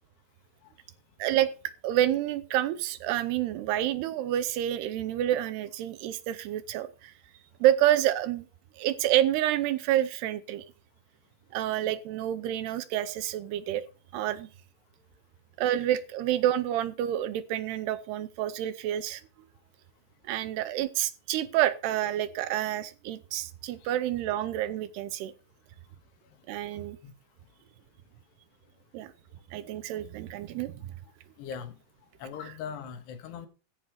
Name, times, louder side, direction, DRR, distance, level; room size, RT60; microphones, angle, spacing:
voice 1, 1.8-7.1 7.6-8.4 8.8-10.6 11.5-13.8 14.1-14.5 15.6-19.2 20.3-25.3 26.5-27.0 28.9-29.1 29.5-30.9, right 12 dB, 75° right, 2.7 m, -28 dB
voice 2, 31.4-31.7 32.2-33.5, left 7 dB, 75° left, 3.6 m, -39 dB
14.5 x 5.6 x 6.7 m
omnidirectional pair, 5.0 m